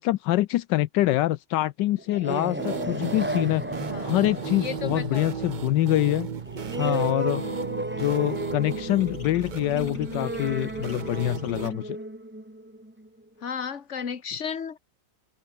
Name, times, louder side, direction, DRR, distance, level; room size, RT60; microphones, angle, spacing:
voice 1, 0.0-3.6 4.0-6.3 6.8-7.4 8.0-12.0, left 15 dB, 80° left, 1.3 m, -25 dB
sound 1, 2.0-13.2, right 1 dB, 5° right, 1.7 m, -34 dB
sound 2, 2.6-11.7, right 7 dB, 60° right, 0.4 m, -35 dB
voice 2, 3.9-5.5 7.4-7.7 13.4-14.8, left 7 dB, 45° left, 1.8 m, -35 dB
sound 3, 8.6-12.0, left 3 dB, 60° left, 4.9 m, -54 dB
omnidirectional pair, 1.9 m